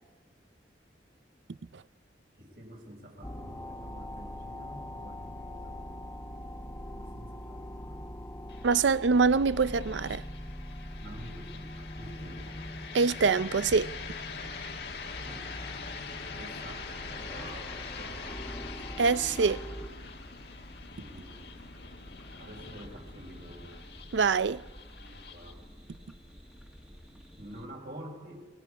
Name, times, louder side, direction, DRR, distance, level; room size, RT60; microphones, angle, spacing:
voice 1, 2.4-5.8 6.9-8.1 11.0-12.6 14.9-15.5 16.3-19.1 19.4-19.6 21.0-21.6 22.4-23.9 25.0-25.6 27.4-28.5, right 1 dB, 60° right, 5.2 m, -48 dB
sound 1, 3.2-19.9, equal, 15° left, 1.2 m, -43 dB
sound 2, 8.5-27.5, left 4 dB, 65° left, 1.5 m, -44 dB
voice 2, 8.6-10.2 12.9-13.9 19.0-19.6 24.1-24.6, right 4 dB, 90° right, 0.5 m, -24 dB
sound 3, 18.4-27.7, equal, 5° right, 1.6 m, -52 dB
29.5 x 19.0 x 4.9 m
head